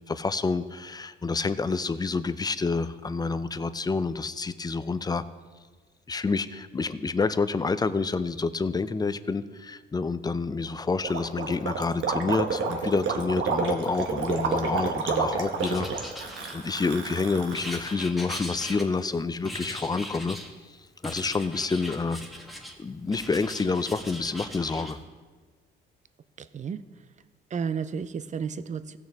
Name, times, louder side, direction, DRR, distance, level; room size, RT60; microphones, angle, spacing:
voice 1, 0.1-5.2 6.1-20.4 21.0-22.2 22.8-25.0, left 4 dB, 20° left, 13 dB, 0.5 m, -28 dB
Gurgling, 11.0-17.9, right 5 dB, 75° right, 1.3 m, -29 dB
Writing, 15.6-16.9 17.5-19.1 19.4-20.5 21.0-22.8 23.1-24.9, equal, ahead, 1.4 m, -40 dB
voice 2, 26.4-26.8 27.5-29.0, right 6 dB, 35° right, 13 dB, 0.5 m, -32 dB
16.0 x 6.4 x 3.5 m, 1.4 s
cardioid pair, 90°, 20 cm